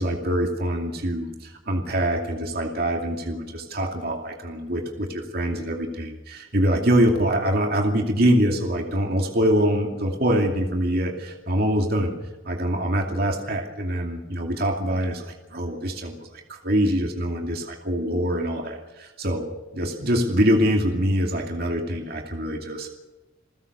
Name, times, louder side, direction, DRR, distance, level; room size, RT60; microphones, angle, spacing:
voice 1, 0.0-12.1 12.4-19.5 19.7-22.9, equal, 50° right, 2 dB, 2.5 m, -24 dB
28.5 x 15.5 x 6.8 m, 1.1 s
head